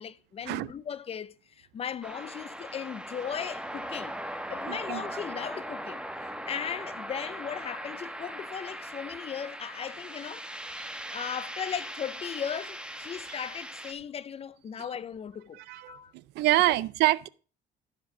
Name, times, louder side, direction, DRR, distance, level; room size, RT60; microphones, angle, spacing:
voice 1, 0.0-4.2 4.5-10.5 11.1-15.6 15.9-16.1 16.7-16.8, left 8 dB, 35° left, 0.5 m, -37 dB
sound 1, 2.0-13.9, equal, 5° right, 1.7 m, -39 dB
voice 2, 4.7-5.1 10.8-10.9 15.6-17.3, right 16 dB, 85° right, 0.5 m, -27 dB
13.0 x 5.1 x 5.4 m
cardioid pair, 110°, 17 cm